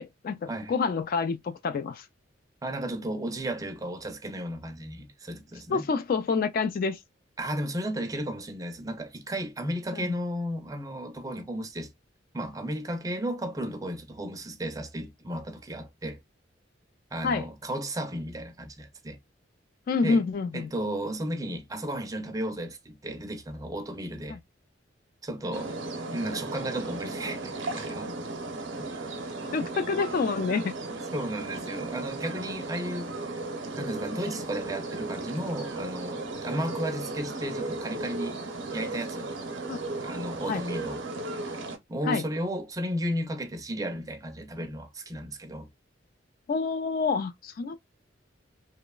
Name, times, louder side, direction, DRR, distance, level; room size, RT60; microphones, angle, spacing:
voice 1, 0.0-2.0 5.7-7.0 9.9-10.1 17.2-17.4 19.9-20.7 24.3-24.4 29.5-30.6 39.7-39.8 40.5-40.6 42.1-42.2 46.5-47.8, left 4 dB, 50° left, 0.3 m, -28 dB
voice 2, 2.6-5.9 7.4-11.9 12.3-16.2 17.1-19.2 20.0-20.3 20.5-24.4 25.2-25.7 26.1-28.1 31.1-33.4 33.8-38.4 38.7-39.3 40.0-41.0 41.9-45.7, right 1 dB, 20° right, 0.4 m, -34 dB
sound 1, 25.5-41.8, right 2 dB, 75° right, 0.6 m, -35 dB
2.9 x 2.1 x 2.2 m
head